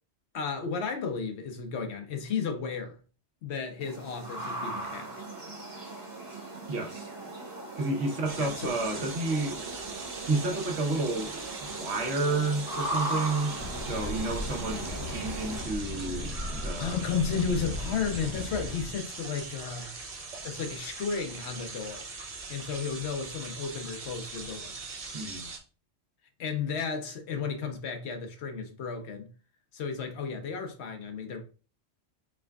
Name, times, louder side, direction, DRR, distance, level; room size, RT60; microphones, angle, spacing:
voice 1, 0.3-3.0 3.4-5.2 8.4-8.7 16.1-19.9 20.4-22.0 22.5-24.8 26.4-29.3 29.7-31.4, left 6 dB, 80° left, 1.0 m, -33 dB
sound 1, 3.8-15.6, right 2 dB, 65° right, 1.6 m, -38 dB
voice 2, 6.7-7.1 7.8-9.6 10.2-17.0 18.4-18.5 25.1-25.5, right 2 dB, 80° right, 1.2 m, -31 dB
sound 2, 8.2-25.6, right 4 dB, 40° right, 0.7 m, -41 dB
sound 3, 13.5-19.0, left 1 dB, 10° left, 1.5 m, -37 dB
4.7 x 3.4 x 2.3 m
omnidirectional pair, 1.1 m